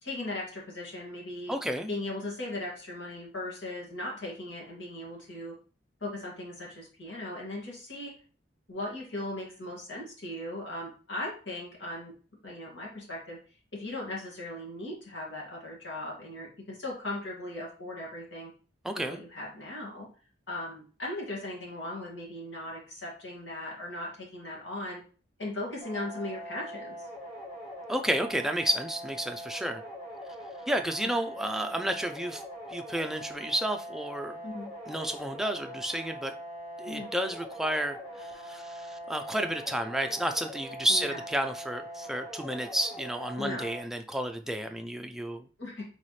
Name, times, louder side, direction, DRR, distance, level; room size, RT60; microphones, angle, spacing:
voice 1, 0.0-1.5 1.9-5.5 6.0-8.1 8.7-12.1 12.4-13.4 13.7-18.5 19.0-20.1 20.5-25.0 25.4-27.1 34.4-34.7 36.9-37.1 40.9-41.2 43.4-43.7 45.6-45.8, left 1 dB, 85° left, -3 dB, 2.1 m, -38 dB
voice 2, 1.5-1.9 18.8-19.2 27.9-29.8 30.7-32.4 32.7-34.4 34.9-36.3 36.8-45.5, right 1 dB, ahead, 5 dB, 0.4 m, -31 dB
sound 1, 25.8-43.8, equal, 35° left, 2.0 m, -42 dB
4.2 x 4.0 x 3.2 m, 0.39 s
head